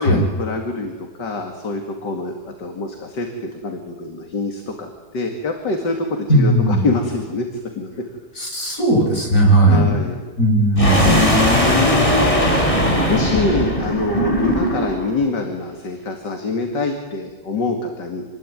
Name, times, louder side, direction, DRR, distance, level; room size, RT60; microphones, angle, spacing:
voice 1, 0.0-7.5 7.8-7.9 9.7-10.2 11.0-18.3, left 3 dB, 60° left, 3 dB, 3.0 m, -25 dB
voice 2, 6.3-6.9 8.4-10.0 10.4-11.2, right 1 dB, 40° left, -1 dB, 8.4 m, -16 dB
sound 1, 10.8-15.1, equal, 15° left, 4.9 m, -18 dB
27.5 x 21.0 x 9.5 m, 1.3 s
omnidirectional pair, 2.1 m